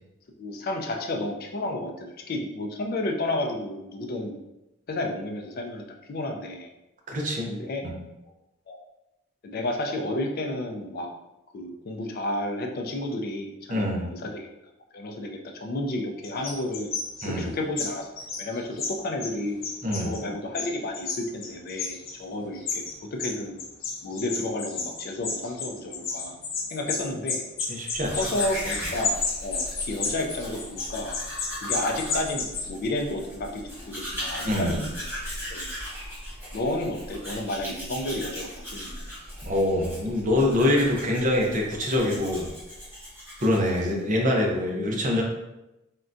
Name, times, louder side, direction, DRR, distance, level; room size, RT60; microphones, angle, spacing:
voice 1, 0.4-4.4 4.9-6.7 7.5-7.8 8.7-8.8 9.4-11.1 11.5-14.5 14.9-16.9 17.2-18.1 18.4-19.6 20.0-21.9 22.2-22.9 23.1-23.6 24.0-26.4 26.7-27.4 28.1-31.1 31.6-35.1 35.5-35.7 36.5-39.1, left 1 dB, 50° left, 3 dB, 0.4 m, -31 dB
voice 2, 7.1-7.5 7.8-8.0 13.7-14.0 17.2-17.5 19.8-20.1 27.7-28.2 34.4-34.8 39.4-42.5 43.4-45.2, left 1 dB, 40° right, 0 dB, 0.6 m, -24 dB
sound 1, 16.2-17.3 17.8-19.4 19.6-20.2 20.5-22.2 22.5-32.7, left 4 dB, 85° left, 0.7 m, -32 dB
Domestic sounds home sounds, 27.9-44.0, equal, 10° right, 1.0 m, -38 dB
3.6 x 2.2 x 2.5 m, 0.94 s
head